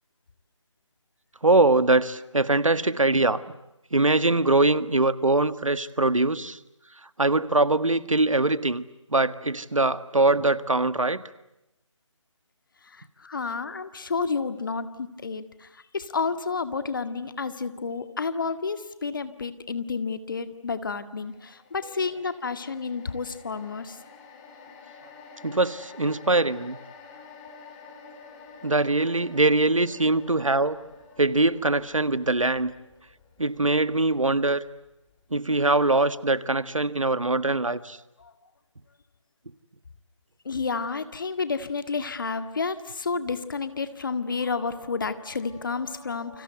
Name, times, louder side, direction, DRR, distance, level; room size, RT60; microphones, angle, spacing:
voice 1, 1.4-3.4 3.9-6.6 7.2-8.8 9.1-11.2 25.4-26.8 28.6-30.8 31.2-32.7 33.4-34.6 35.3-38.0, right 2 dB, 80° right, 15 dB, 1.6 m, -22 dB
voice 2, 12.9-15.7 15.9-24.0 38.2-38.3 40.5-46.4, left 4 dB, 40° left, 11 dB, 1.9 m, -30 dB
sound 1, 21.2-35.6 35.9-36.1, left 5 dB, 15° left, 3.0 m, -49 dB
29.5 x 25.0 x 8.0 m, 0.91 s
figure-of-eight pair, 160°, 17 cm